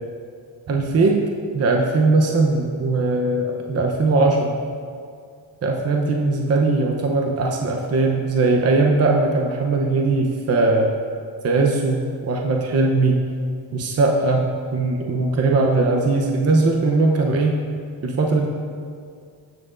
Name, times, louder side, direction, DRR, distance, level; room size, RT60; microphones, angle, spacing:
voice 1, 0.7-1.2 1.5-4.6 5.6-10.9 11.4-13.2 13.7-17.6 18.0-18.5, right 3 dB, 35° right, 1 dB, 0.8 m, -19 dB
15.0 x 6.5 x 2.5 m, 2.2 s
cardioid pair, 105°, 44 cm